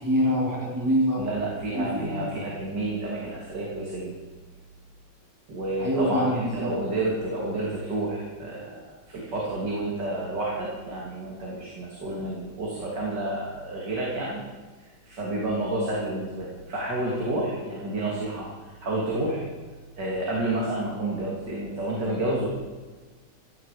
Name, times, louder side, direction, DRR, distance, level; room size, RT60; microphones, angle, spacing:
voice 1, 0.0-1.2 1.7-2.3 5.8-6.7, equal, 10° right, -4 dB, 4.4 m, -25 dB
voice 2, 1.2-4.1 5.5-14.4 15.0-19.4 20.0-22.5, right 2 dB, 70° right, -4 dB, 3.6 m, -30 dB
16.0 x 16.0 x 5.0 m, 1.4 s
omnidirectional pair, 1.9 m